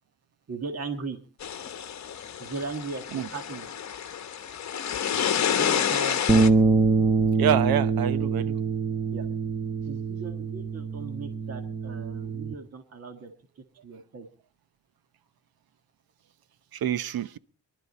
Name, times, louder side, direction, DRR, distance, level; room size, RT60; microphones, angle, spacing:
voice 1, 0.5-1.2 2.4-3.0 3.3-3.7 5.5-6.5 9.1-9.3 9.9-13.3 13.8-14.3, right 4 dB, 35° right, 1.9 m, -37 dB
sound 1, 1.4-6.5, left 8 dB, 40° left, 1.2 m, -29 dB
sound 2, 6.3-12.5, right 4 dB, 5° right, 0.8 m, -25 dB
voice 2, 7.4-8.6 16.7-17.4, right 9 dB, 60° right, 0.9 m, -26 dB
23.0 x 12.0 x 4.1 m
cardioid pair, 160°, 41 cm